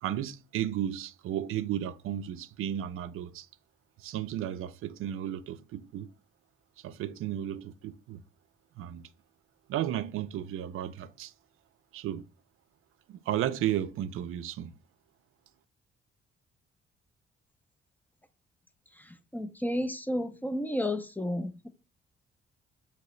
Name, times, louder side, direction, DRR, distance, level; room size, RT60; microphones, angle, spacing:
voice 1, 0.0-3.5 4.0-6.1 6.8-8.2 8.8-9.1 9.7-11.3 11.9-12.3 13.1-14.7, right 11 dB, 85° right, 0.4 m, -34 dB
voice 2, 19.3-21.7, left 1 dB, 10° left, 0.4 m, -31 dB
5.8 x 2.9 x 3.1 m
cardioid pair, 105°, 21 cm